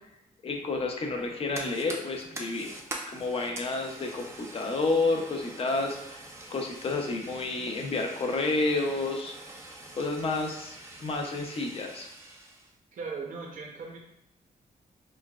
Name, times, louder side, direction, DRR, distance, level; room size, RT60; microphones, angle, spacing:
voice 1, 0.4-2.7 3.1-6.2 6.5-9.3 10.0-10.8 11.0-12.1, left 3 dB, 40° left, 2 dB, 0.6 m, -30 dB
Fire, 1.2-12.7, right 2 dB, 20° right, 0.5 m, -44 dB
voice 2, 12.9-14.0, right 4 dB, 60° right, 0 dB, 0.6 m, -38 dB
5.4 x 2.1 x 2.3 m, 0.84 s
wide cardioid pair, 145°, 15 cm